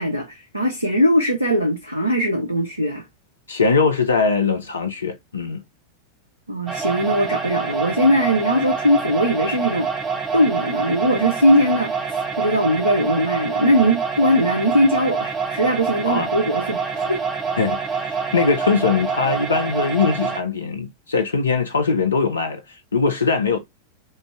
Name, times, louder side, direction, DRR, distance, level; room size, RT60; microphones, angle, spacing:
voice 1, 0.0-3.0 6.5-9.9 10.3-17.2, equal, 85° right, 0.6 m, -20 dB
voice 2, 3.5-5.6 16.1-16.3 17.6-23.6, left 4 dB, 75° left, 0.4 m, -21 dB
sound 1, 6.7-20.4, right 5 dB, 20° right, 0.9 m, -26 dB
3.1 x 2.5 x 3.5 m
figure-of-eight pair, 90°, 0 cm